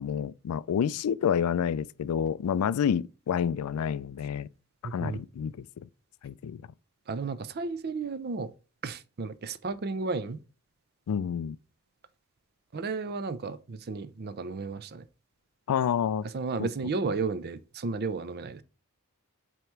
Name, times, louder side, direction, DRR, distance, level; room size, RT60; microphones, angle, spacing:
voice 1, 0.0-4.5 4.9-5.7 6.2-6.6 11.1-11.6 15.7-16.3 16.6-16.7, left 8 dB, 80° left, 0.3 m, -28 dB
voice 2, 4.8-5.2 7.1-8.5 8.8-10.4 12.7-15.0 16.2-18.6, right 4 dB, 45° right, 0.5 m, -33 dB
7.8 x 3.0 x 4.6 m
head